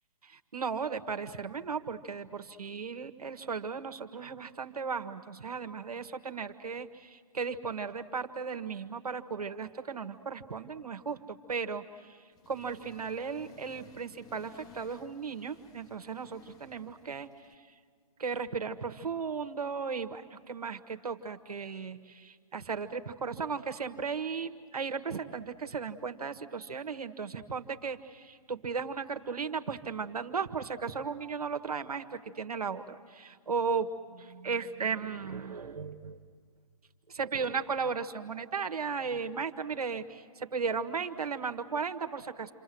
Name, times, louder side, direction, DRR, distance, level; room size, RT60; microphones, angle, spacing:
voice 1, 0.2-17.7 18.2-36.2 37.1-42.5, right 5 dB, 85° right, 8 dB, 1.6 m, -36 dB
Accelerating revving vroom, 12.3-17.5, left 6 dB, 20° left, 1.1 m, -57 dB
28.5 x 25.5 x 7.8 m, 2.1 s
hypercardioid pair, 135°, 19 cm